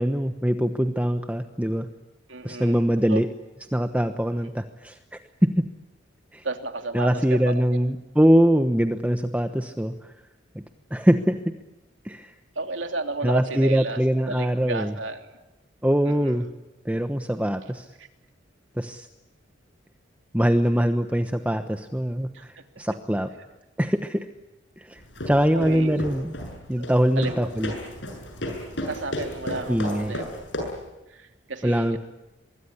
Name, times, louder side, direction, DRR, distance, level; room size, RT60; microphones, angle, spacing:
voice 1, 0.0-1.9 2.4-3.3 3.7-5.0 5.4-5.7 6.3-6.4 6.9-10.1 10.5-10.6 10.9-11.4 12.0-12.3 13.2-14.9 15.8-16.5 16.8-17.8 18.8-19.1 20.3-22.5 22.8-23.3 23.8-24.3 24.8-26.3 26.7-27.7 29.7-30.2 31.6-32.0, equal, 10° right, 7 dB, 1.1 m, -23 dB
voice 2, 2.3-3.2 6.4-7.6 12.5-14.0 14.3-15.3 16.0-16.4 22.3-22.4 25.5-26.0 26.8-26.9 27.2-27.3 28.9-30.7 31.1-32.0, right 3 dB, 85° right, 5 dB, 3.0 m, -33 dB
running up stairs, 25.0-30.9, left 1 dB, 70° left, 7.8 m, -34 dB
25.0 x 23.0 x 9.9 m, 1.0 s
head